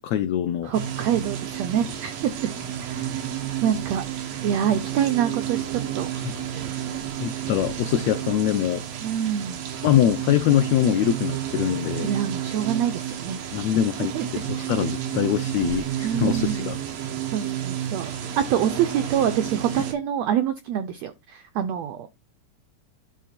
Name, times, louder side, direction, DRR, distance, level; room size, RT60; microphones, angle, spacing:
voice 1, 0.0-0.7 6.2-6.3 7.2-8.8 9.8-12.1 13.5-16.8, left 11 dB, 90° left, 1.5 m, -23 dB
voice 2, 0.6-2.5 2.8-3.2 3.6-4.0 4.4-6.1 9.0-9.6 12.0-13.4 14.0-14.7 16.0-16.7 17.3-22.2, right 9 dB, 85° right, 1.5 m, -26 dB
sound 1, 0.7-19.9, right 10 dB, 60° right, 2.3 m, -31 dB
10.5 x 3.8 x 4.3 m
omnidirectional pair, 3.9 m